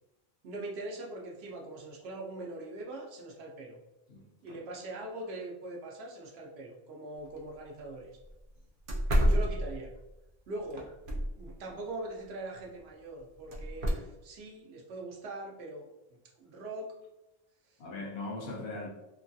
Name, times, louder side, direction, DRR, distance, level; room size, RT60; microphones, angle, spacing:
voice 1, 0.4-3.8 4.4-8.1 9.2-9.9 10.5-10.9 11.4-15.9 16.4-16.9 17.7-17.8, right 2 dB, 90° right, -1 dB, 0.9 m, -42 dB
voice 2, 4.1-4.6 17.8-18.9, left 2 dB, 80° left, -2 dB, 1.0 m, -40 dB
sound 1, 7.3-7.4 7.8-7.9 8.3-8.4 8.9-10.1 10.7-11.5 13.5-13.9, equal, 60° right, 0.7 m, -28 dB
3.2 x 2.3 x 2.6 m, 0.98 s
omnidirectional pair, 1.0 m